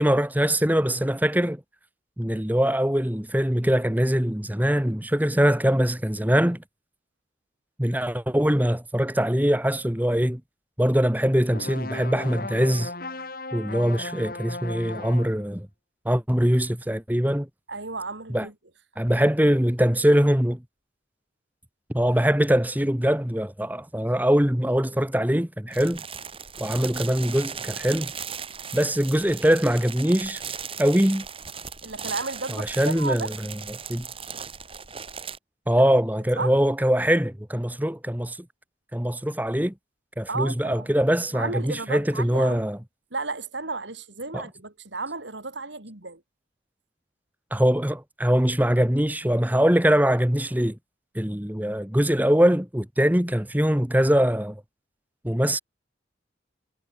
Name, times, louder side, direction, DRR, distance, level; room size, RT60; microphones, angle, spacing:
voice 1, 0.0-1.6 2.2-6.6 7.8-10.4 10.8-12.9 13.5-15.7 16.0-17.5 18.3-18.5 19.0-20.6 21.9-26.0 26.6-28.1 28.7-30.4 30.8-31.2 32.5-33.3 33.9-34.0 35.7-38.4 38.9-39.7 40.2-42.8 44.3-44.4 47.5-50.7 51.1-54.6 55.2-55.6, equal, 10° right, 1.4 m, -22 dB
sound 1, 11.5-15.4, left 2 dB, 50° left, 6.0 m, -36 dB
voice 2, 17.7-18.5 19.2-19.3 31.8-33.3 35.7-35.8 36.3-36.5 40.3-40.9 41.3-42.7 43.1-46.2, right 3 dB, 65° right, 3.0 m, -33 dB
sound 2, 25.7-35.4, right 7 dB, 30° right, 7.2 m, -37 dB
head